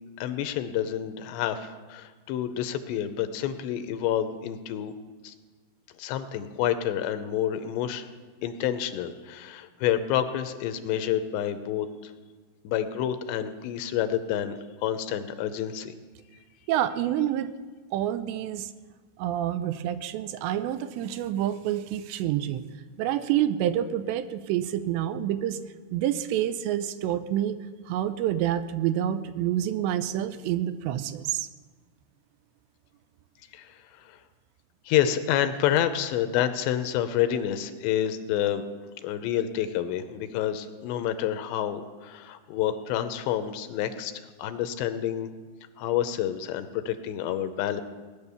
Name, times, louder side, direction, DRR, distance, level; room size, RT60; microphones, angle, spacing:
voice 1, 0.2-4.9 5.2-5.3 6.0-8.1 8.4-12.1 12.6-16.0 33.5-34.2 34.9-38.6 39.0-45.3 45.8-47.8, left 10 dB, 85° left, 9 dB, 2.9 m, -28 dB
voice 2, 16.7-17.5 17.9-18.7 19.2-22.7 23.0-25.6 25.9-27.6 27.9-31.5, right 11 dB, 85° right, 12 dB, 2.8 m, -28 dB
19.5 x 10.5 x 7.0 m, 1.4 s
omnidirectional pair, 5.1 m